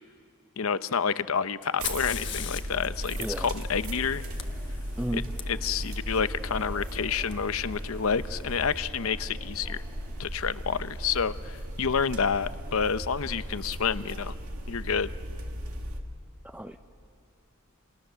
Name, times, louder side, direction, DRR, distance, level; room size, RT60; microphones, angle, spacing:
voice 1, 0.6-4.2 5.1-5.2 5.5-9.8 10.2-14.4 14.7-15.1, left 6 dB, 70° left, 13 dB, 0.7 m, -29 dB
Fire, 1.6-5.4 7.3-7.4 8.2-8.7, left 11 dB, 55° left, 1.3 m, -40 dB
sound 1, 1.8-16.0, equal, 85° right, 2.4 m, -36 dB
sound 2, 2.8-11.2, left 1 dB, 10° left, 2.4 m, -53 dB
voice 2, 3.2-3.6 5.0-5.3 16.4-16.8, right 1 dB, 5° right, 7 dB, 0.6 m, -33 dB
29.0 x 28.5 x 6.9 m, 2.4 s
head